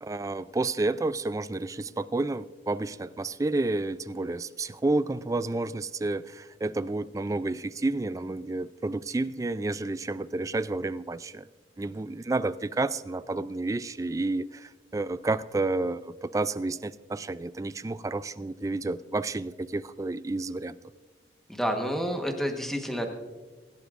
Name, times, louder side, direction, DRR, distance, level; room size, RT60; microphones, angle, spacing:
voice 1, 0.0-11.5 11.8-20.8, right 2 dB, 20° right, 0.3 m, -30 dB
voice 2, 21.5-23.1, equal, ahead, 1.2 m, -29 dB
24.5 x 11.5 x 2.5 m
head